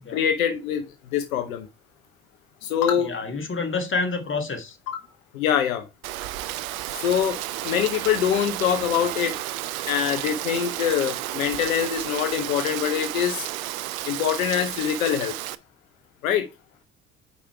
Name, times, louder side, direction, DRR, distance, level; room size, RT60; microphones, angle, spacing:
voice 1, 0.1-0.8 1.1-1.7 2.6-3.1 4.9-5.0 5.3-5.8 6.9-7.4 7.6-9.3 9.9-13.5 14.0-15.3 16.2-16.5, left 9 dB, 80° left, 0.8 m, -24 dB
voice 2, 3.0-4.8, left 4 dB, 30° left, 1.7 m, -28 dB
Rain, 6.0-15.5, right 15 dB, 80° right, 0.5 m, -32 dB
5.1 x 5.0 x 4.6 m
hypercardioid pair, 55°, 41 cm